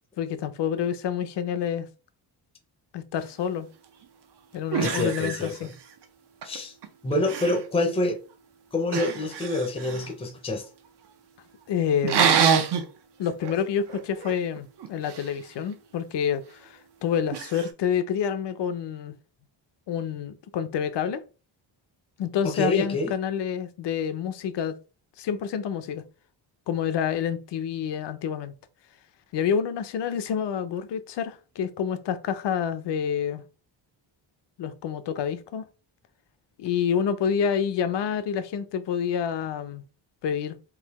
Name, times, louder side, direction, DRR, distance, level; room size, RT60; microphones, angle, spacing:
voice 1, 0.2-1.9 2.9-3.7 4.5-5.7 11.7-12.3 13.2-19.2 19.9-21.2 22.2-24.8 25.2-26.0 26.7-28.5 29.3-33.4 34.6-35.7 36.6-39.8 40.2-40.6, left 8 dB, 65° left, 0.6 m, -28 dB
sound 1, 4.0-4.1 4.7-6.0 6.4-6.9 7.1-7.7 8.9-10.1 12.0-12.9 13.3-13.6 13.9-15.3 17.3-17.7, right 7 dB, 60° right, 0.7 m, -26 dB
voice 2, 4.8-5.7 6.4-6.7 7.0-8.2 8.7-10.7 22.4-23.1, left 2 dB, 10° left, 0.6 m, -27 dB
3.9 x 2.6 x 4.1 m
wide cardioid pair, 170°, 47 cm